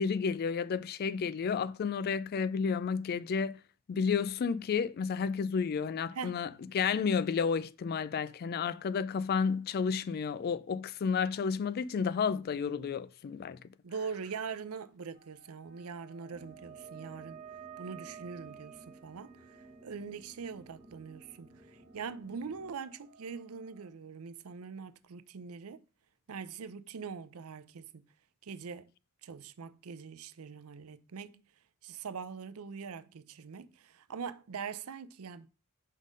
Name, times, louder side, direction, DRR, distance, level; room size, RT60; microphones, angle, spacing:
voice 1, 0.0-3.6 3.9-13.6, left 6 dB, 45° left, 0.3 m, -31 dB
voice 2, 13.8-17.4 17.8-19.3 19.8-25.8 26.3-28.0 28.4-28.9 29.2-31.4 31.8-35.5, right 6 dB, 80° right, 0.5 m, -42 dB
sound 1, 15.1-23.9, right 8 dB, 40° right, 1.2 m, -54 dB
sound 2, 16.3-22.7, right 2 dB, 5° right, 1.3 m, -56 dB
5.5 x 3.7 x 5.1 m
head